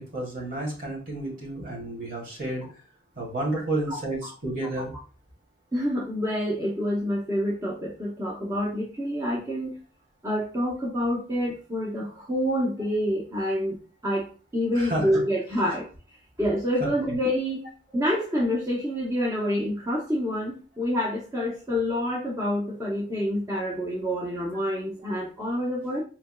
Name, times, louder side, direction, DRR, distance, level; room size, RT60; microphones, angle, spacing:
voice 1, 0.0-2.7 3.2-4.9 14.7-15.1 16.8-16.9, right 1 dB, 45° right, 0 dB, 1.5 m, -31 dB
voice 2, 5.7-9.7 10.2-13.8 14.0-15.9 16.4-17.6 17.9-26.0, equal, 15° right, -5 dB, 0.7 m, -27 dB
4.4 x 3.4 x 2.2 m, 0.37 s
head